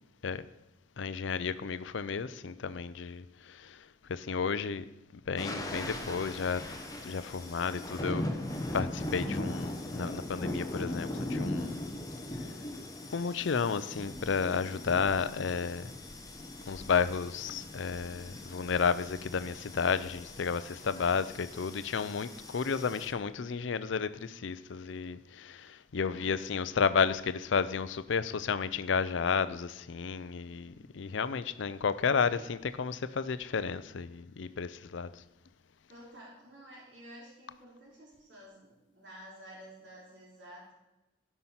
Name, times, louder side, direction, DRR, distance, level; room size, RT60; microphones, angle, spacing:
voice 1, 1.0-4.9 5.1-6.6 7.0-8.3 8.7-11.9 12.3-12.6 13.1-15.9 16.7-35.2, left 5 dB, 65° left, 0.5 m, -32 dB
sound 1, 5.4-23.1, left 1 dB, 20° left, 0.9 m, -39 dB
voice 2, 20.9-21.4 25.9-26.4 30.4-30.9 32.2-32.4 35.9-40.7, equal, 60° right, 3.8 m, -52 dB
12.0 x 5.7 x 5.6 m
head